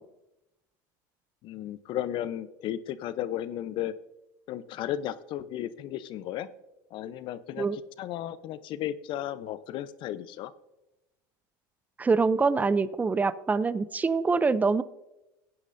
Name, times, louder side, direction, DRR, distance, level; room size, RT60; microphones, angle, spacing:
voice 1, 1.4-3.9 4.5-6.5 6.9-10.5, left 12 dB, 55° left, 14 dB, 0.7 m, -34 dB
voice 2, 12.0-14.8, right 4 dB, 15° right, 17 dB, 0.5 m, -25 dB
17.0 x 9.7 x 2.6 m, 0.94 s
supercardioid pair, 110°, 10 cm